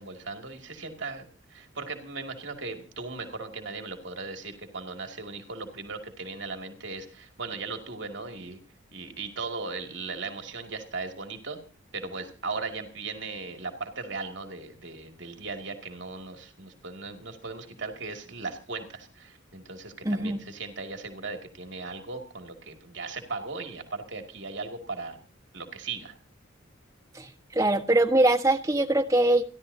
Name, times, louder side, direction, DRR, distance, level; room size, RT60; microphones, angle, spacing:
voice 1, 0.0-8.6 8.9-11.6 11.9-25.2 25.5-26.1, right 4 dB, 65° right, 4 dB, 2.4 m, -37 dB
voice 2, 20.0-20.4 27.1-29.4, right 1 dB, 15° right, 1 dB, 1.3 m, -23 dB
29.0 x 11.5 x 2.8 m, 0.35 s
head